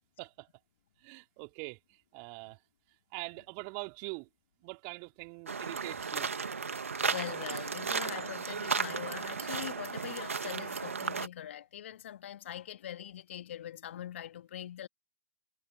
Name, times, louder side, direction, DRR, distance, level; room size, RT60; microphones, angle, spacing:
voice 1, 0.2-0.5 1.0-1.8 2.1-2.6 3.1-4.3 4.6-6.3, right 33 dB, 40° right, 3.6 m, -43 dB
sound 1, 5.5-11.3, right 5 dB, 85° right, 2.2 m, -35 dB
voice 2, 7.0-14.9, left 11 dB, 65° left, 3.0 m, -42 dB
hypercardioid pair, 115°, 7 cm